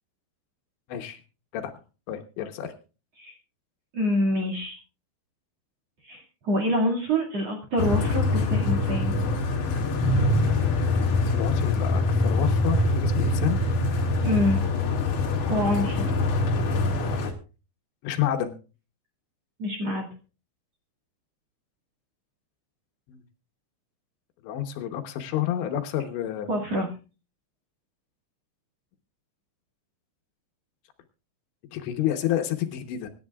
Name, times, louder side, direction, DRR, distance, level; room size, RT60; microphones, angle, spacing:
voice 1, 0.9-1.2 1.5-1.7 2.1-2.7 11.3-13.6 18.0-18.5 23.1-23.2 24.4-26.5 31.7-33.1, left 11 dB, 75° left, 6 dB, 3.2 m, -29 dB
voice 2, 3.9-4.8 6.0-9.1 14.2-14.6 15.5-16.0 19.6-20.1 26.5-26.9, equal, 45° right, 1 dB, 2.5 m, -26 dB
sound 1, 7.8-17.3, left 2 dB, 55° left, 2.9 m, -24 dB
25.0 x 10.5 x 2.4 m, 0.34 s
omnidirectional pair, 5.4 m